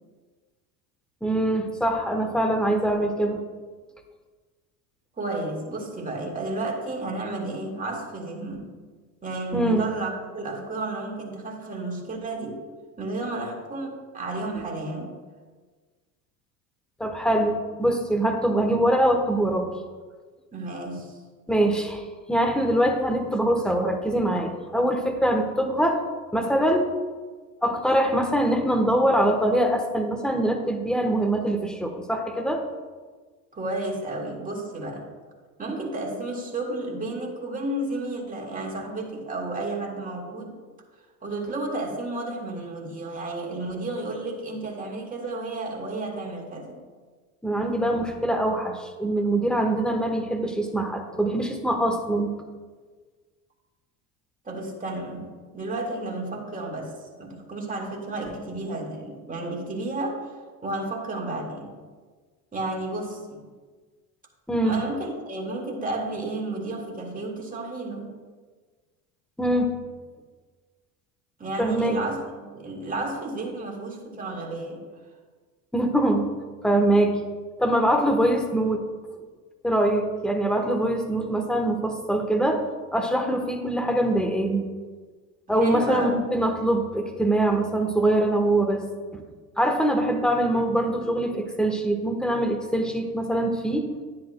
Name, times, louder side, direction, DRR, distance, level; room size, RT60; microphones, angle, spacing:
voice 1, 1.2-3.4 9.5-9.9 17.0-19.7 21.5-22.0 22.3-26.0 26.3-26.9 27.6-32.6 47.4-52.3 64.5-64.9 69.4-69.7 71.6-72.0 75.7-76.3 76.6-77.2 77.6-78.9 79.6-82.6 82.9-84.7 85.5-88.8 89.1-89.2 89.6-93.9, right 1 dB, ahead, 4 dB, 1.0 m, -23 dB
voice 2, 5.2-8.7 9.2-12.6 13.0-15.1 20.5-21.2 33.5-35.1 35.6-40.5 41.2-46.8 54.5-56.9 57.2-60.3 60.6-61.7 62.5-63.5 64.6-68.1 71.4-74.9 85.5-86.2, right 2 dB, 20° right, -1 dB, 1.9 m, -32 dB
10.5 x 10.0 x 2.2 m, 1.4 s
hypercardioid pair, 90°, 43 cm